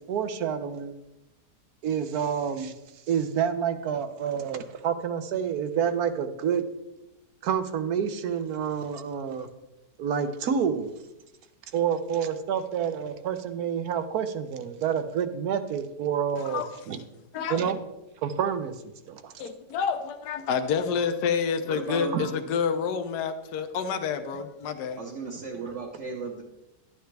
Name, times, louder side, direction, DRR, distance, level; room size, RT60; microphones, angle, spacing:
voice 1, 0.1-0.9 1.8-2.7 3.1-6.6 7.4-9.5 10.0-10.9 11.7-16.6 16.9-17.0 17.5-17.8 18.2-18.7 19.1-19.3 22.1-22.2, right 8 dB, 65° right, 10 dB, 1.2 m, -28 dB
voice 2, 16.4-16.7 17.3-17.7 19.4-25.0, left 6 dB, 75° left, 7 dB, 1.3 m, -28 dB
voice 3, 21.6-22.4 25.0-26.4, right 3 dB, 50° right, -1 dB, 1.2 m, -35 dB
11.5 x 9.2 x 3.3 m, 0.93 s
omnidirectional pair, 1.8 m